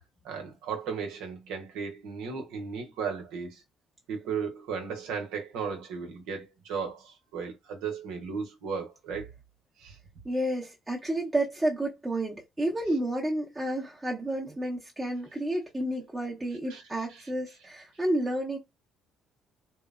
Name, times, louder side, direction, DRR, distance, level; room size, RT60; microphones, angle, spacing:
voice 1, 0.2-3.6 4.1-9.3 9.8-10.0 16.7-16.8 17.1-17.3, right 6 dB, 80° right, 0.8 m, -35 dB
voice 2, 10.2-18.6, right 1 dB, 15° right, 0.8 m, -30 dB
2.9 x 2.0 x 2.4 m
supercardioid pair, 70°, 0 cm